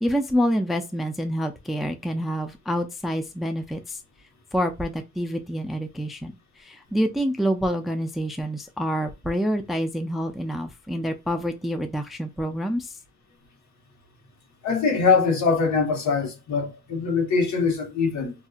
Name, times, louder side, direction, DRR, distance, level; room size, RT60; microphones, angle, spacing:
voice 1, 0.0-4.0 4.5-13.0, equal, ahead, 0.4 m, -27 dB
voice 2, 14.6-18.3, left 5 dB, 65° left, 1.2 m, -22 dB
2.7 x 2.6 x 2.3 m
cardioid pair, 90°, 30 cm